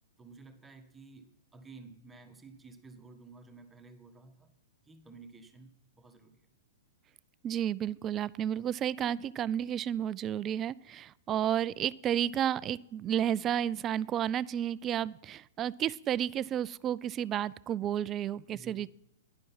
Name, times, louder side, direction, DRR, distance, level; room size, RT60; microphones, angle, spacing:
voice 1, 0.2-4.5 4.8-6.5 18.5-18.8, right 3 dB, 10° right, 6 dB, 1.4 m, -53 dB
voice 2, 7.4-18.9, right 10 dB, 25° right, 20 dB, 0.4 m, -32 dB
11.5 x 10.5 x 5.6 m, 0.85 s
figure-of-eight pair, 110°, 0 cm